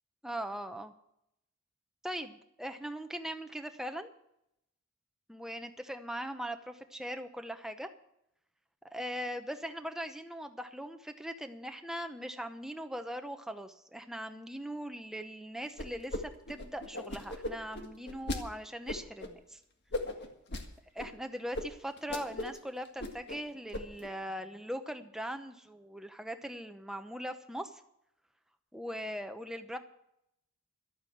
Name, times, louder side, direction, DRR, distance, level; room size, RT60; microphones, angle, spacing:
voice 1, 0.2-0.9 2.0-4.1 5.3-7.9 8.9-19.6 20.9-27.8 28.7-29.8, equal, ahead, 7 dB, 0.8 m, -40 dB
sound 1, 15.8-16.2 16.5-18.4 18.9-19.3 19.9-20.6 21.0-21.1 21.5-21.6 22.0-22.6 22.8-23.4 23.7-24.1, left 1 dB, 55° left, 1.7 m, -37 dB
12.5 x 8.8 x 8.0 m, 0.78 s
head